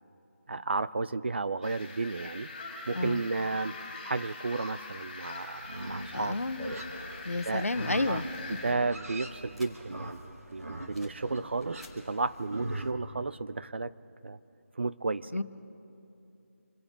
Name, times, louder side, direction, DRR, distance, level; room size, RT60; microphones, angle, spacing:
voice 1, 0.5-2.5 2.9-3.7 4.0-6.4 7.4-7.7 8.1-8.2 8.5-13.9 14.2-14.4 14.8-15.3, right 3 dB, 50° right, 15 dB, 0.5 m, -33 dB
sound 1, 1.6-8.7, left 3 dB, 25° left, 4.5 m, -43 dB
Livestock farm animals working animals, 5.6-12.9, right 1 dB, 85° right, 1.9 m, -41 dB
voice 2, 6.1-6.6 7.2-8.3 15.3-15.4, left 2 dB, 85° left, 11 dB, 1.0 m, -30 dB
sound 2, 8.3-10.2 10.5-11.3 11.5-12.0, left 1 dB, ahead, 1.6 m, -56 dB
27.0 x 9.9 x 5.3 m, 2.8 s
figure-of-eight pair, 170°, 8 cm